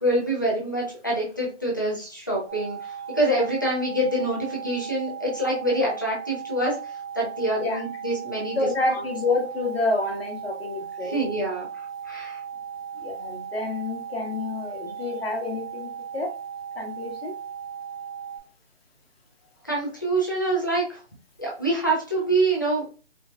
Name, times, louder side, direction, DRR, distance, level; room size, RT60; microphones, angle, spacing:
voice 1, 0.0-8.6 8.9-9.0 11.0-11.7 12.0-12.4 19.6-21.0 21.4-22.9, right 1 dB, 20° left, -4 dB, 0.5 m, -26 dB
sound 1, 2.5-18.4, right 7 dB, 60° right, 1.4 m, -37 dB
voice 2, 8.6-11.2 13.0-16.3 16.8-17.4, left 2 dB, 55° left, 3 dB, 1.0 m, -28 dB
4.4 x 2.0 x 2.4 m, 0.35 s
hypercardioid pair, 160°, 35 cm